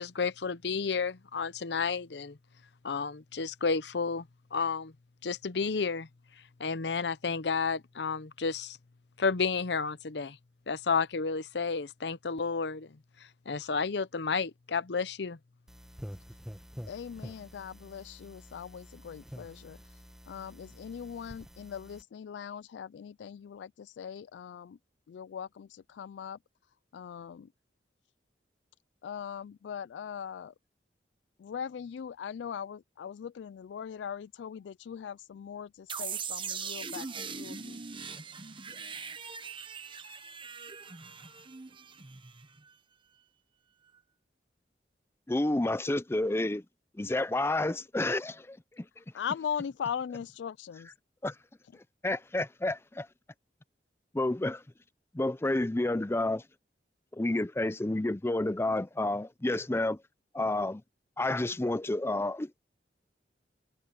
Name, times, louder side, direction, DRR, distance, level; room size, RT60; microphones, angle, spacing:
voice 1, 0.0-2.4 2.8-4.9 5.2-6.1 6.6-8.8 9.2-10.4 10.7-13.0 13.5-15.4, left 5 dB, 70° left, 0.7 m, -31 dB
sound 1, 15.7-22.0, equal, 5° right, 1.1 m, -48 dB
voice 2, 16.8-19.8 20.3-24.8 25.1-26.4 26.9-27.5 29.0-30.5 31.4-37.8 49.1-50.9, left 7 dB, 85° left, 0.3 m, -40 dB
sound 2, 35.9-42.7, right 6 dB, 30° right, 1.0 m, -41 dB
voice 3, 45.3-46.6 47.0-48.9 51.2-51.3 52.0-53.1 54.1-54.6 55.1-56.4 57.1-60.0 60.3-60.8 61.2-62.5, left 2 dB, 15° left, 0.5 m, -30 dB
head